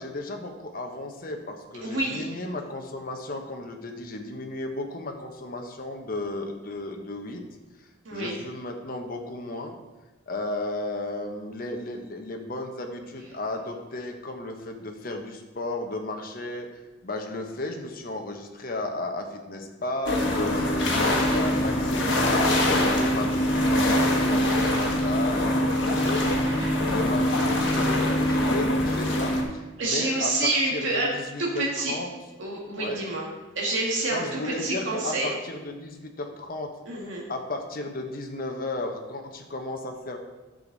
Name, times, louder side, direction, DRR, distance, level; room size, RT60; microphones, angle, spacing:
voice 1, 0.0-7.5 8.1-9.8 10.3-22.1 22.7-32.1 32.8-33.0 34.1-36.7 37.3-40.2, left 2 dB, 45° left, 3 dB, 1.0 m, -34 dB
voice 2, 1.8-2.3 8.1-8.4 26.4-26.7 29.8-31.1 31.4-31.9 32.4-33.3 33.5-35.3 36.9-37.3, right 2 dB, 75° right, -4 dB, 2.0 m, -28 dB
sound 1, 20.1-29.4, left 1 dB, 60° left, 1.6 m, -23 dB
10.5 x 6.4 x 4.0 m, 1.2 s
head